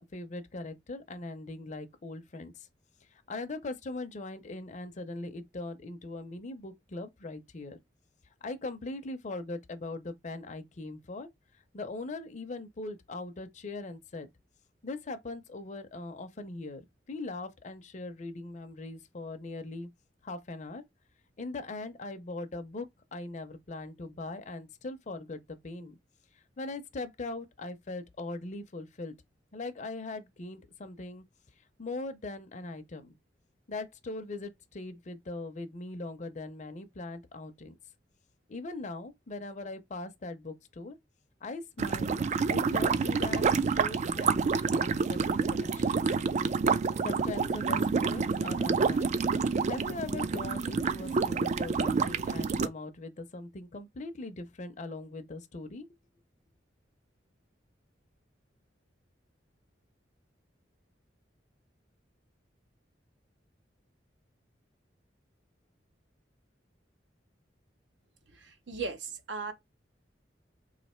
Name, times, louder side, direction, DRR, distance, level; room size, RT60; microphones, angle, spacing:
voice 1, 0.0-2.7 3.1-7.8 8.4-11.3 11.7-14.3 14.8-16.8 17.1-19.9 20.2-20.8 21.4-22.9 23.1-26.0 26.6-29.1 29.5-31.2 31.8-33.2 33.7-37.7 38.5-41.0 41.4-42.2 42.5-43.4 43.7-46.0 47.0-49.1 49.7-55.9, left 2 dB, 40° left, 0.6 m, -40 dB
sound 1, 41.8-52.7, right 5 dB, 40° right, 0.3 m, -28 dB
voice 2, 68.3-69.5, right 4 dB, 75° right, 0.8 m, -37 dB
3.2 x 2.5 x 4.2 m
head